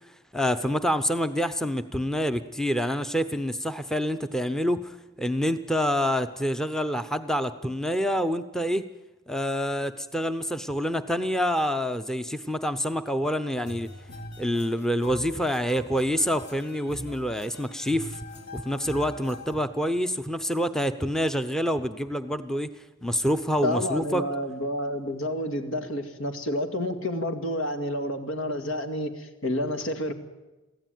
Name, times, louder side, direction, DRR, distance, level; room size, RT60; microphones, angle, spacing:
voice 1, 0.3-8.8 9.3-13.9 14.4-18.2 18.5-22.7 23.0-24.2, equal, 5° left, 10 dB, 0.7 m, -27 dB
sound 1, 13.6-19.6, left 1 dB, 55° left, 3.8 m, -42 dB
voice 2, 23.6-30.1, left 1 dB, 80° left, 7 dB, 2.2 m, -29 dB
23.0 x 15.5 x 9.3 m, 1.1 s
head